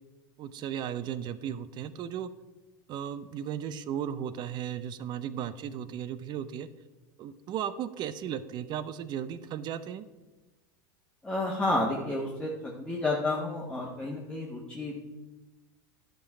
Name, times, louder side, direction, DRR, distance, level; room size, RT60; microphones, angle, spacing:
voice 1, 0.4-2.3 2.9-6.7 7.2-10.1, right 9 dB, 45° right, 14 dB, 0.6 m, -35 dB
voice 2, 11.2-14.9, left 2 dB, 10° left, -4 dB, 1.5 m, -31 dB
11.5 x 5.4 x 4.9 m, 1.2 s
hypercardioid pair, 100°, 10 cm